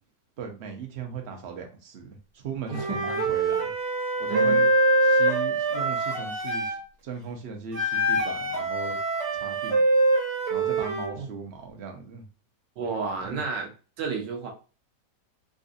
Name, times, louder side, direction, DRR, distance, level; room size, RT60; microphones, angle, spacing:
voice 1, 0.4-3.7 4.2-4.7 5.0-9.0 9.3-9.8 10.5-12.3 13.2-13.4, right 6 dB, 50° right, 3 dB, 0.8 m, -38 dB
Wind instrument woodwind instrument, 2.7-6.8 7.7-11.1, right 2 dB, 70° right, 1.9 m, -24 dB
voice 2, 2.7-3.1 4.3-4.7 11.1-11.3 12.8-13.7 14.0-14.5, right 5 dB, 90° right, 1 dB, 1.5 m, -31 dB
3.9 x 2.5 x 2.5 m, 0.34 s
omnidirectional pair, 1.8 m